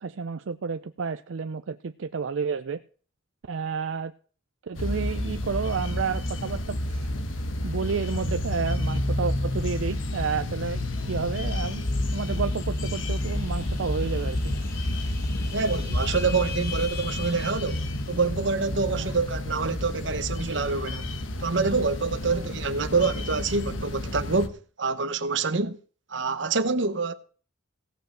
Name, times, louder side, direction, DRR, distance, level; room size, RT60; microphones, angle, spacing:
voice 1, 0.0-2.8 3.5-4.1 4.6-7.1 7.6-11.8 12.1-14.5 18.9-19.1 22.2-22.4 25.5-25.7, right 5 dB, 85° right, 0.5 m, -31 dB
sound 1, 4.7-24.5, left 1 dB, 85° left, 1.3 m, -30 dB
sound 2, 10.5-18.5, left 6 dB, 50° left, 3.6 m, -43 dB
voice 2, 15.5-21.1 21.4-25.8 26.1-27.1, right 4 dB, 65° right, 1.0 m, -26 dB
16.5 x 5.5 x 7.4 m
head